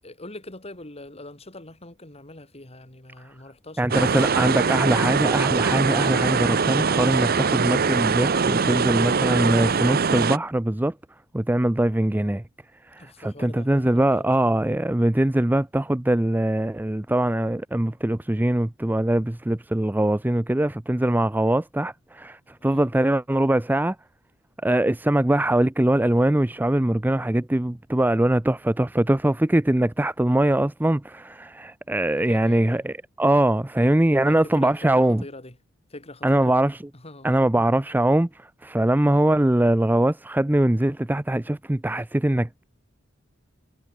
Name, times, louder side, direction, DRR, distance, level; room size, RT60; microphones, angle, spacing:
voice 1, 0.0-4.4 13.0-14.3 22.6-22.9 32.1-32.8 34.2-35.6 35.9-36.6 36.9-37.3, left 2 dB, 30° left, 3.8 m, -43 dB
voice 2, 3.8-10.9 11.3-12.4 12.9-24.0 24.6-35.2 36.2-36.8 37.2-42.6, right 1 dB, 10° right, 0.5 m, -22 dB
sound 1, 3.9-10.4, right 5 dB, 50° right, 0.8 m, -22 dB
head